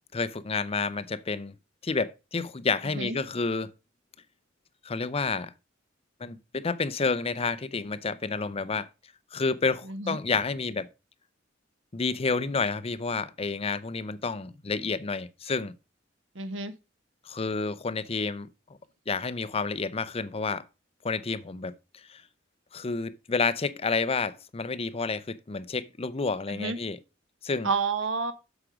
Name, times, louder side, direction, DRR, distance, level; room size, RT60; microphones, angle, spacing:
voice 1, 0.1-1.5 1.8-3.7 4.8-5.5 6.2-8.9 9.3-10.9 11.9-15.7 17.3-18.5 19.1-20.6 21.0-21.7 22.1-22.2 22.7-27.0 27.4-27.7, left 4 dB, 30° left, 0.6 m, -30 dB
voice 2, 16.3-16.7 26.5-26.8 27.6-28.3, right 4 dB, 75° right, 1.3 m, -29 dB
8.2 x 6.1 x 5.0 m
head